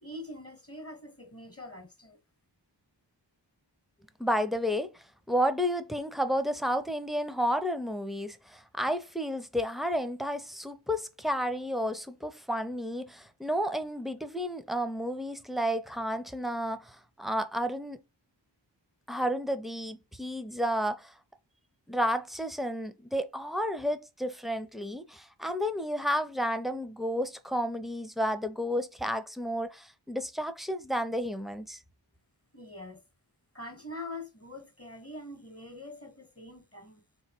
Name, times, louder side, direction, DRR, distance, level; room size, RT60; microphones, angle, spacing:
voice 1, 0.0-2.2 32.5-33.0 33.5-37.0, left 1 dB, 30° left, 1.0 m, -44 dB
voice 2, 4.2-18.0 19.1-21.1 21.9-31.8, equal, ahead, 0.6 m, -31 dB
3.9 x 3.1 x 4.4 m
wide cardioid pair, 50°, 45 cm